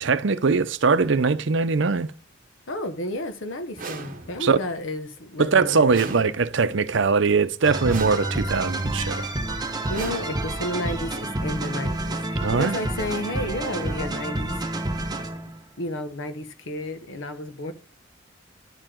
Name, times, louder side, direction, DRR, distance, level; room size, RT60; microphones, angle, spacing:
voice 1, 0.0-2.1 4.4-4.6 5.4-9.3 12.4-12.8, right 4 dB, 65° right, 0.6 m, -21 dB
voice 2, 2.7-6.1 9.9-14.6 15.8-17.7, left 1 dB, 75° left, 1.0 m, -32 dB
sound 1, 3.8-4.6 5.9-6.8 7.9-8.7 9.9-10.8, right 4 dB, 45° right, 1.1 m, -38 dB
sound 2, 7.6-15.6, right 1 dB, 20° right, 0.9 m, -29 dB
10.5 x 4.8 x 3.7 m
head